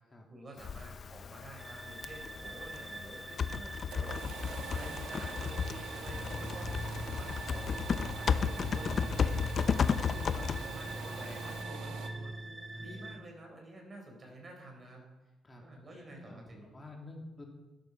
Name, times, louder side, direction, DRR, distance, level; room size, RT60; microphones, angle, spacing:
voice 1, 0.3-7.7 8.2-9.4 9.7-12.4 12.8-15.1 15.6-16.7, right 1 dB, 35° right, 2 dB, 4.7 m, -50 dB
Typing, 0.6-11.6, left 6 dB, 50° left, 0.6 m, -34 dB
sound 1, 1.6-13.2, right 2 dB, 20° right, 1.8 m, -43 dB
sound 2, 3.7-12.1, right 6 dB, 90° right, 1.4 m, -45 dB
voice 2, 16.1-17.5, left 2 dB, 25° left, -1 dB, 2.9 m, -49 dB
12.5 x 11.0 x 5.5 m, 1.1 s
cardioid pair, 90°, 0 cm